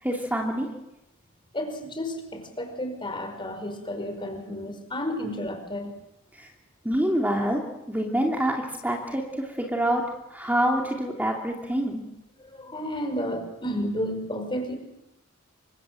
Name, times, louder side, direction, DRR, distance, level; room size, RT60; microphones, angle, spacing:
voice 1, 0.0-0.7 6.3-6.5 6.8-7.6 7.9-10.0 10.3-12.0, right 1 dB, 10° right, 0 dB, 2.8 m, -26 dB
voice 2, 1.5-5.9 12.5-14.8, equal, 25° left, 6 dB, 5.2 m, -32 dB
28.0 x 25.0 x 7.8 m, 0.92 s
head